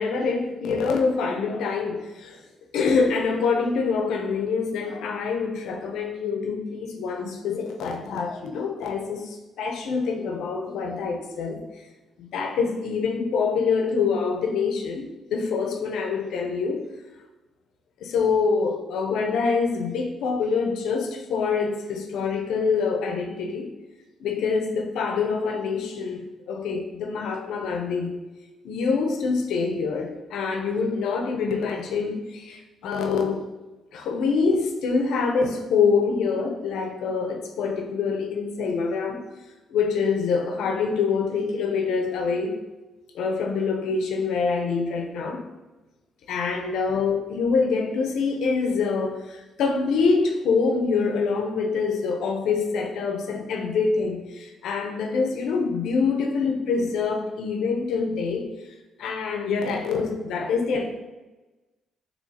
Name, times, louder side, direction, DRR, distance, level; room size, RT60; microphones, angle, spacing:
voice 1, 0.0-2.4 2.7-11.8 12.2-16.9 18.0-23.7 24.2-28.1 28.6-33.4 33.9-39.3 39.7-42.6 43.1-45.4 46.3-58.5 59.0-60.8, left 5 dB, 80° left, 3 dB, 0.6 m, -25 dB
6.3 x 3.0 x 2.8 m, 1.1 s
cardioid pair, 90°, 0 cm